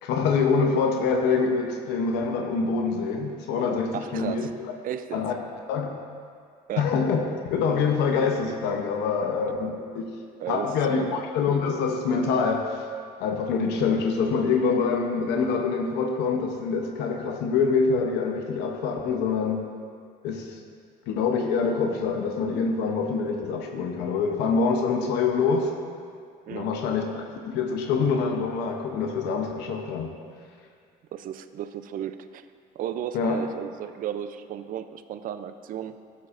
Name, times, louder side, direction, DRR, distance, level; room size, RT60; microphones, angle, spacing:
voice 1, 0.0-4.5 5.1-5.3 5.7-5.9 6.8-7.2 7.5-10.2 10.5-12.8 13.2-19.7 20.2-20.6 21.1-25.7 26.5-30.1 33.1-33.4, left 5 dB, 90° left, 3 dB, 0.7 m, -25 dB
voice 2, 3.9-4.5 4.8-5.2 6.7-6.9 10.4-11.2 26.5-26.8 31.1-32.5 32.8-36.0, right 10 dB, 55° right, 11 dB, 0.4 m, -34 dB
12.5 x 7.3 x 2.5 m, 2.2 s
cardioid pair, 110°, 17 cm